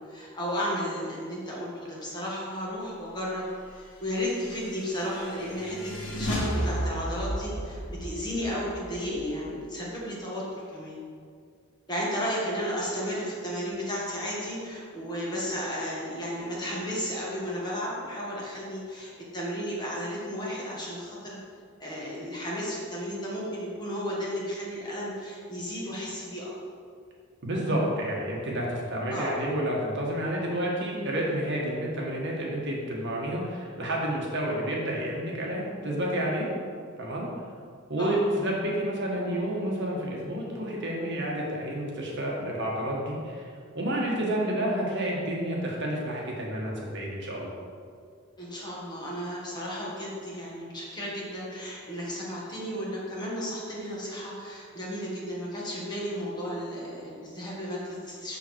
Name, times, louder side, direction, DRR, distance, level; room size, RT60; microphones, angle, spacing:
voice 1, 0.0-11.0 11.9-21.4 21.8-26.5 29.1-29.3 38.0-38.2 48.4-58.4, equal, 20° left, -6 dB, 1.8 m, -33 dB
sound 1, 4.2-9.8, equal, 65° left, 1.6 m, -34 dB
voice 2, 27.4-36.5 37.0-37.3 37.9-43.5 43.7-47.5, right 1 dB, 60° right, -3 dB, 1.5 m, -30 dB
6.9 x 6.4 x 4.5 m, 2.2 s
head